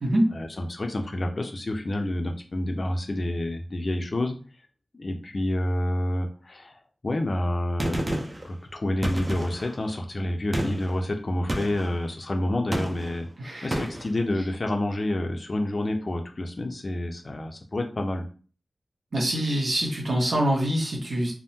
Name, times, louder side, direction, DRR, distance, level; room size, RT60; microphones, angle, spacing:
voice 1, 0.3-4.4 4.9-6.7 7.0-8.2 8.4-13.3 13.6-18.2, left 1 dB, 45° left, 4 dB, 0.5 m, -28 dB
Gunshot gunfire, 7.8-8.5 9.0-9.7 10.5-10.9 11.5-11.9 12.7-13.2 13.7-14.1, right 1 dB, 25° right, 0.5 m, -30 dB
voice 2, 13.4-13.9 19.1-21.3, right 1 dB, 75° right, -2 dB, 0.9 m, -25 dB
3.5 x 2.1 x 2.7 m, 0.39 s
wide cardioid pair, 85°, 0 cm